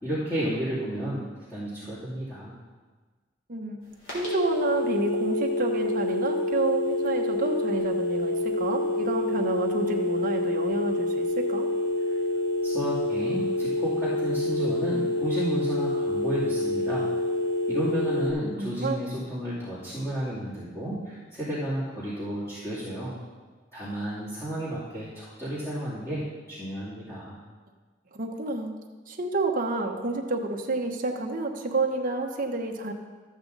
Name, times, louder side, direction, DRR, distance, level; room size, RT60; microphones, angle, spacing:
voice 1, 0.0-2.5 12.6-17.1 17.7-23.2 23.7-27.4, equal, 15° left, -12 dB, 2.7 m, -32 dB
voice 2, 3.5-3.8 4.1-11.7 18.6-19.0 28.1-28.8 29.1-32.9, right 3 dB, 50° right, 2 dB, 1.1 m, -29 dB
sound 1, 4.1-18.3, left 2 dB, 75° left, 3.7 m, -27 dB
13.5 x 7.9 x 4.0 m, 1.4 s
head